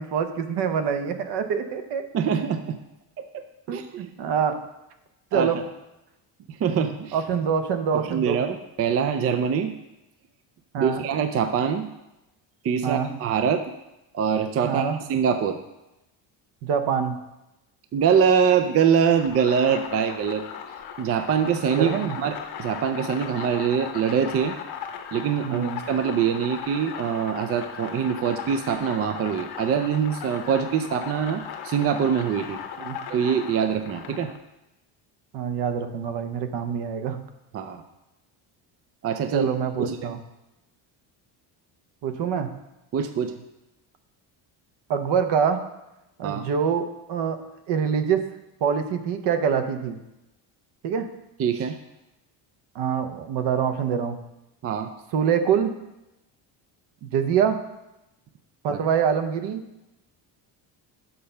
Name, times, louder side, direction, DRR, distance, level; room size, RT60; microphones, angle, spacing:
voice 1, 0.0-2.1 3.7-4.6 5.3-5.6 7.1-8.4 10.7-11.0 12.8-13.1 14.6-15.0 16.6-17.2 21.8-22.2 25.4-25.8 32.8-33.0 35.3-37.2 39.3-40.2 42.0-42.5 44.9-45.6 46.2-47.4 47.7-48.2 48.6-50.0 50.8-51.1 52.7-54.2 55.1-55.7 57.1-57.6 58.6-59.6, right 7 dB, 65° right, 8 dB, 0.9 m, -25 dB
voice 2, 2.1-2.8 3.7-4.1 5.3-5.6 6.5-7.2 7.9-9.7 10.8-11.9 12.6-13.6 14.1-15.6 17.9-20.4 21.0-21.9 22.2-24.6 25.1-32.6 33.1-34.3 37.5-37.8 39.0-39.5 39.8-40.1 42.9-43.3 46.2-46.5 51.4-51.8 54.6-54.9 58.7-58.8, right 7 dB, 35° right, 7 dB, 0.4 m, -24 dB
sound 1, 19.2-34.4, left 8 dB, 55° left, 0.9 m, -37 dB
6.7 x 5.2 x 5.5 m, 0.94 s
cardioid pair, 145°, 45 cm